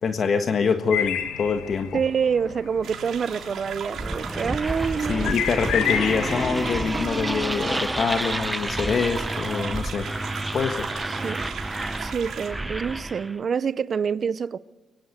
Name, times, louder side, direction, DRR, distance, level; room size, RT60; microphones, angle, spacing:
voice 1, 0.0-2.0 5.0-10.1 10.5-10.9, left 5 dB, 50° left, 1.5 m, -25 dB
sound 1, 0.9-8.9, left 9 dB, 85° left, 1.6 m, -33 dB
voice 2, 1.9-5.3 11.1-11.5 12.0-14.6, right 6 dB, 45° right, 0.8 m, -27 dB
sound 2, 2.8-12.5, right 8 dB, 70° right, 3.6 m, -37 dB
sound 3, 4.0-13.4, right 1 dB, 10° right, 0.8 m, -30 dB
23.5 x 23.0 x 6.8 m
cardioid pair, 90°, 0 cm